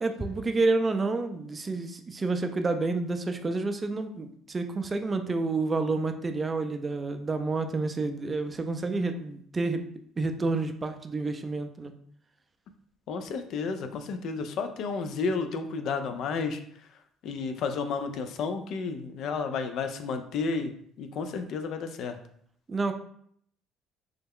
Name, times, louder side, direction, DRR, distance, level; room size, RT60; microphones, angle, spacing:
voice 1, 0.0-9.8 10.2-11.9 22.7-22.9, right 3 dB, 25° right, 7 dB, 0.4 m, -29 dB
voice 2, 13.1-16.6 17.2-20.7 21.0-22.2, left 4 dB, 65° left, 7 dB, 0.4 m, -31 dB
3.3 x 2.1 x 3.5 m, 0.64 s
supercardioid pair, 85°, 0 cm